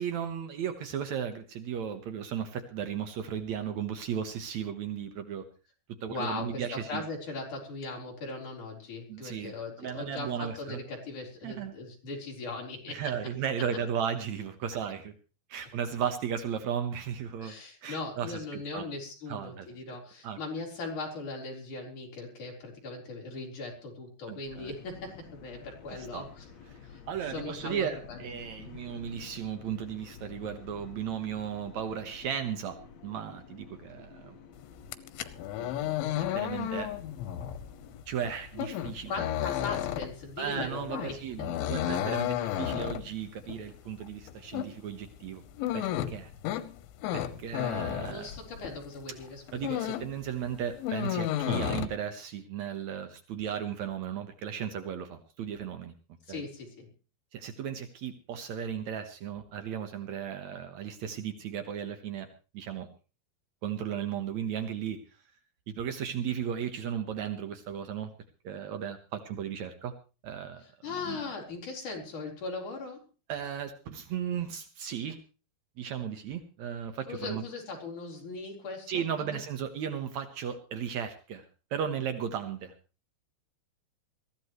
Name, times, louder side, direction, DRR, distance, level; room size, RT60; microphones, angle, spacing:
voice 1, 0.0-5.4 6.0-7.0 9.1-10.8 11.4-11.7 12.9-15.1 15.5-17.5 17.8-18.9 19.3-19.7 20.2-20.4 24.3-24.7 25.9-26.2 27.1-32.8 33.0-34.4 35.6-35.9 36.2-36.9 38.1-39.1 40.4-45.4 45.7-46.3 47.1-48.3 49.5-55.9 56.3-56.4 57.3-62.3 62.5-62.9 63.6-65.0 65.7-68.1 68.4-69.9 70.2-70.6 71.0-71.2 73.3-75.2 75.8-77.4 78.9-81.4 81.7-82.7, right 8 dB, 85° right, 8 dB, 1.6 m, -35 dB
voice 2, 6.1-13.0 17.4-26.5 26.9-27.0 27.3-28.2 39.1-41.2 48.1-49.8 56.3-56.9 70.6-73.0 77.1-79.1, left 3 dB, 45° left, 1 dB, 5.2 m, -39 dB
sound 1, 24.4-38.0, left 7 dB, 70° left, 1.6 m, -50 dB
sound 2, 34.8-48.9 49.2-50.2 50.5-51.9, left 11 dB, 90° left, 3.5 m, -33 dB
22.0 x 15.0 x 3.1 m, 0.34 s
omnidirectional pair, 5.2 m